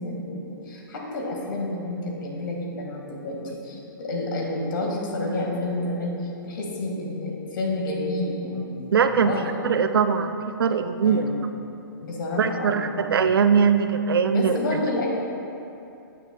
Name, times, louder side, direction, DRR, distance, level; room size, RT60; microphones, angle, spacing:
voice 1, 0.0-9.4 11.0-11.4 12.0-13.1 14.3-15.1, left 2 dB, 65° left, -1 dB, 1.8 m, -30 dB
voice 2, 8.9-9.3 9.6-11.2 12.4-14.6, right 6 dB, 80° right, 9 dB, 0.5 m, -21 dB
9.8 x 8.6 x 2.2 m, 2.8 s
hypercardioid pair, 135°, 12 cm